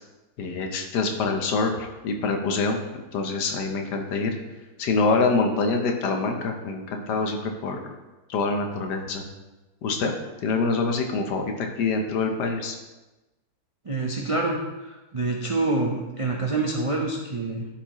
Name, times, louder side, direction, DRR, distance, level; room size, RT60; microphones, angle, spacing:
voice 1, 0.4-4.4 4.8-7.9 8.3-9.2 9.8-10.1 10.4-12.8, left 4 dB, 90° left, 3 dB, 1.5 m, -25 dB
voice 2, 13.8-17.7, right 3 dB, 55° right, -1 dB, 0.3 m, -27 dB
12.0 x 4.5 x 3.0 m, 1.1 s
omnidirectional pair, 1.7 m